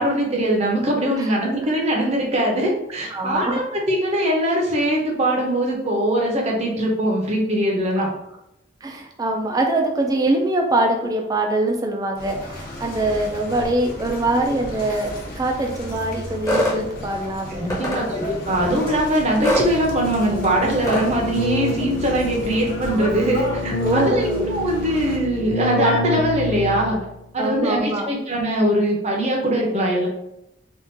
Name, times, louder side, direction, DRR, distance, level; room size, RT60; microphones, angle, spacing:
voice 1, 0.0-8.1 17.5-27.0 27.3-30.1, right 1 dB, 35° right, -1 dB, 0.7 m, -22 dB
voice 2, 3.1-3.6 8.0-8.1 8.8-18.3 19.4-19.6 23.8-24.5 27.4-28.1, right 2 dB, 20° right, 2 dB, 0.4 m, -23 dB
sound 1, 12.2-25.2, left 1 dB, 50° left, 0.7 m, -34 dB
sound 2, 16.5-16.8 17.7-18.0 19.4-19.7 20.9-21.1, left 1 dB, 15° left, 0.8 m, -21 dB
Keyboard (musical), 19.6-27.1, left 1 dB, 85° left, 0.4 m, -27 dB
3.5 x 2.4 x 2.6 m, 0.84 s
head